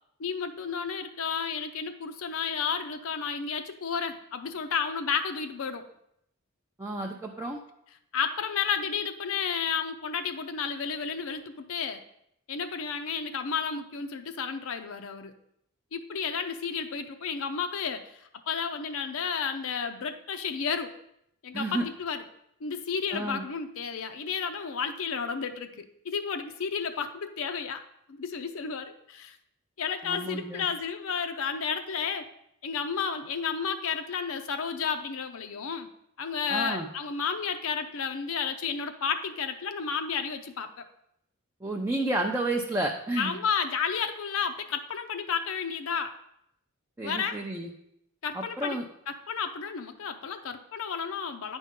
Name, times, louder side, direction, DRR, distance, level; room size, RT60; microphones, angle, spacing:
voice 1, 0.2-5.9 8.1-12.0 12.5-15.3 15.9-21.0 21.4-22.2 22.6-27.8 28.1-29.4 29.8-32.3 32.6-35.9 36.2-40.7 43.2-46.1 47.0-47.4 48.2-48.8 49.1-51.6, left 6 dB, 65° left, 8 dB, 0.5 m, -32 dB
voice 2, 6.8-7.6 21.5-21.9 23.1-23.4 30.0-30.6 36.5-36.9 41.6-43.4 47.0-47.7 48.3-48.9, right 2 dB, 10° right, 0 dB, 0.5 m, -31 dB
9.3 x 5.3 x 3.6 m, 0.76 s
head